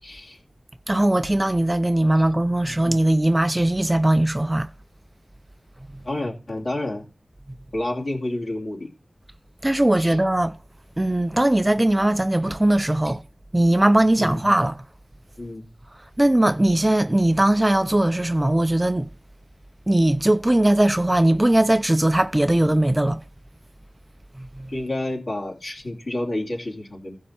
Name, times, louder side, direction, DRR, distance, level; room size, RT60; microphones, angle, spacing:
voice 1, 0.0-0.4 2.1-2.2 2.7-2.8 3.4-3.5 6.0-7.1 7.7-8.9 10.0-10.2 13.0-13.1 14.2-14.4 15.4-15.6 24.7-27.1, left 1 dB, 65° left, 2.6 m, -30 dB
voice 2, 0.9-4.7 5.9-6.0 9.6-10.5 11.0-13.2 13.5-14.8 16.2-19.1 19.9-23.2 24.4-24.7, right 1 dB, 20° right, 0.4 m, -19 dB
15.5 x 5.5 x 4.3 m
wide cardioid pair, 60°, 0 cm